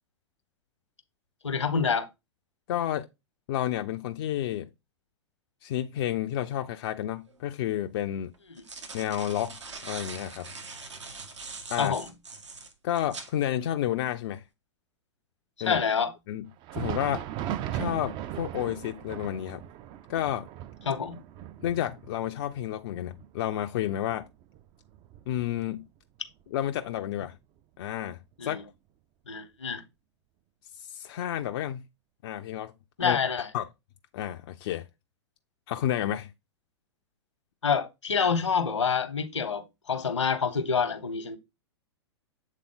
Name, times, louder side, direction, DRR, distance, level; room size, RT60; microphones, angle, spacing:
voice 1, 1.4-2.1 8.5-8.6 11.8-12.1 15.6-16.1 20.8-21.2 28.4-28.6 29.3-29.8 33.0-33.5 37.6-41.4, left 6 dB, 80° left, 1.0 m, -27 dB
voice 2, 2.7-3.1 3.5-4.7 5.6-8.3 8.9-10.5 11.7-11.9 12.8-14.4 15.6-15.8 16.3-16.5 16.7-17.3 17.7-19.6 20.1-20.5 21.6-24.3 25.3-25.9 26.5-27.4 27.8-28.7 30.8-31.8 32.2-32.7 33.0-33.2 33.5-33.7 34.1-34.9 35.7-36.3, left 11 dB, 50° left, 0.4 m, -31 dB
sound 1, 7.3-7.4 8.3-13.3, right 4 dB, 80° right, 1.1 m, -42 dB
Thunder, 16.5-26.0 26.3-26.5 27.2-27.3 28.3-28.4, right 11 dB, 30° right, 0.4 m, -38 dB
7.3 x 3.7 x 3.7 m
figure-of-eight pair, 100°, 15 cm